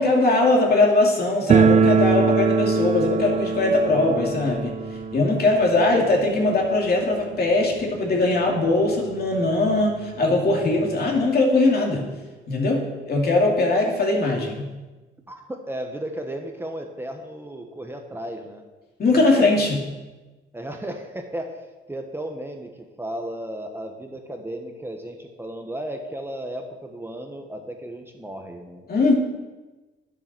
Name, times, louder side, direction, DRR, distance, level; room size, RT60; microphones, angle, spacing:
voice 1, 0.0-4.8 5.1-12.1 12.5-14.7 19.0-19.8 28.9-29.1, left 2 dB, 50° left, 0 dB, 2.7 m, -20 dB
sound 1, 1.5-8.2 8.5-8.6 8.8-8.9 9.7-9.8 10.1-11.2, right 5 dB, 35° right, 0.5 m, -23 dB
voice 2, 15.3-18.6 19.2-19.5 20.5-28.9, right 1 dB, 10° right, 3 dB, 1.2 m, -34 dB
9.9 x 7.6 x 6.1 m, 1.2 s
cardioid pair, 90°, 20 cm